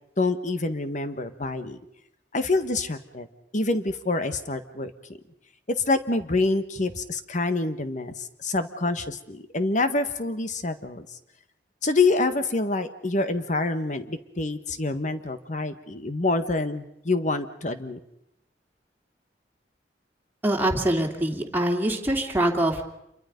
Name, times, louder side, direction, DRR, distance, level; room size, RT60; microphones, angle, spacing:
voice 1, 0.2-1.8 2.3-3.3 3.5-4.9 5.7-11.1 11.8-18.0, left 3 dB, 45° left, 10 dB, 1.5 m, -26 dB
voice 2, 20.4-22.9, right 1 dB, 10° right, 0 dB, 2.8 m, -24 dB
28.0 x 23.5 x 5.3 m, 0.80 s
head